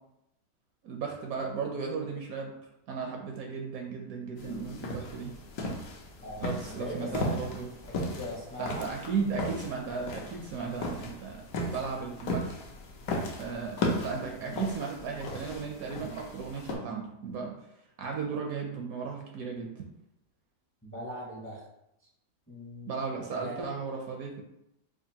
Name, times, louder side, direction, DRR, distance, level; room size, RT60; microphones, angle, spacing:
voice 1, 0.8-2.5 2.9-5.3 6.4-7.7 8.6-12.5 13.4-17.5 18.0-19.7 22.9-24.4, right 5 dB, 70° right, 1 dB, 0.9 m, -35 dB
sound 1, 4.4-16.8, left 1 dB, 65° left, 1.0 m, -36 dB
voice 2, 6.2-7.4 8.0-8.9 20.8-21.6 22.5-23.7, left 1 dB, 15° left, -5 dB, 0.5 m, -40 dB
5.0 x 2.5 x 2.8 m, 0.83 s
omnidirectional pair, 1.8 m